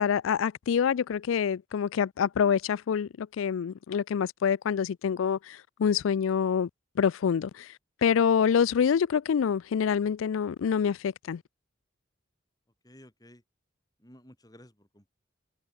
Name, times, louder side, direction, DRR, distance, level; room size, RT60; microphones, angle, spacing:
voice 1, 0.0-6.7 7.0-7.7 8.0-11.4, left 7 dB, 80° left, 0.4 m, -26 dB
voice 2, 12.8-13.4 14.0-15.1, equal, 20° left, 5.4 m, -54 dB
head